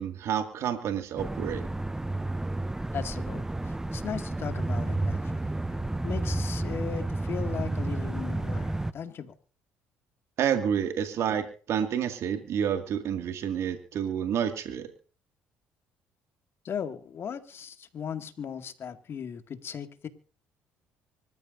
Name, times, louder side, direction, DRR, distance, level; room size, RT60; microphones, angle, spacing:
voice 1, 0.0-1.7 10.4-14.9, right 8 dB, 60° right, 6 dB, 2.1 m, -29 dB
sound 1, 1.2-8.9, right 2 dB, 10° right, 0.7 m, -31 dB
voice 2, 2.9-5.5 6.0-9.3 16.6-20.1, left 7 dB, 50° left, 7 dB, 2.2 m, -37 dB
25.0 x 14.0 x 2.7 m, 0.39 s
supercardioid pair, 75°, 5 cm